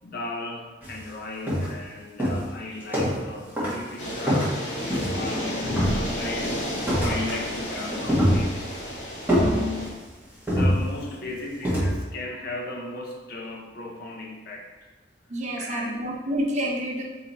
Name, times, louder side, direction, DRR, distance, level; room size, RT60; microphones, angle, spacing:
voice 1, 0.0-6.6 7.0-8.7 9.3-10.0 10.5-14.9 15.6-16.1, left 2 dB, 60° left, 0 dB, 0.7 m, -36 dB
sound 1, 0.8-1.0 1.5-1.9 2.2-3.3 3.6-3.9 4.3-5.3 5.7-6.4 6.9-7.5 7.8-8.8 9.3-10.0 10.5-11.2 11.6-12.0, equal, 10° right, 1.4 m, -24 dB
sound 2, 4.0-9.9, equal, 85° left, 1.4 m, -32 dB
voice 2, 15.3-17.0, equal, 40° right, -1 dB, 0.7 m, -28 dB
4.0 x 2.9 x 4.0 m, 1.3 s
head